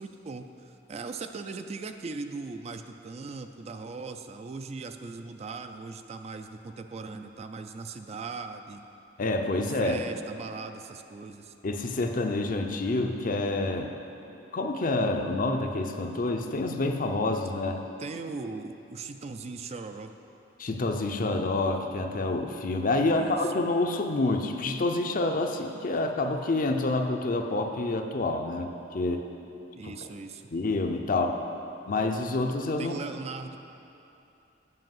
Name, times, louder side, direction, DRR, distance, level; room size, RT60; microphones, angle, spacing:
voice 1, 0.0-8.8 9.6-11.5 18.0-20.1 23.0-23.4 29.8-30.4 32.8-33.6, right 4 dB, 35° right, 7 dB, 0.4 m, -39 dB
voice 2, 9.2-10.0 11.6-13.9 14.5-17.8 20.6-29.2 30.5-31.4 31.9-33.0, left 2 dB, 45° left, 5 dB, 0.6 m, -28 dB
7.7 x 5.5 x 7.6 m, 2.8 s
head